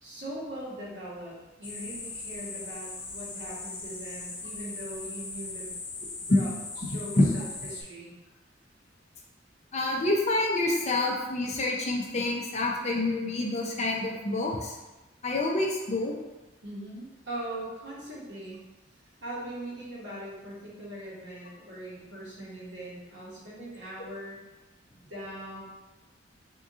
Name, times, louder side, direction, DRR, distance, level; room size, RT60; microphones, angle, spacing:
voice 1, 0.0-5.7 6.2-6.6 6.8-8.2 16.6-18.6 19.2-24.4 24.9-25.6, right 1 dB, 65° right, -7 dB, 1.4 m, -40 dB
sound 1, 1.6-7.8, left 3 dB, 75° left, 0.7 m, -39 dB
voice 2, 9.7-14.8 15.2-16.1, left 2 dB, 35° left, -1 dB, 0.6 m, -27 dB
3.6 x 2.9 x 3.6 m, 1.1 s
head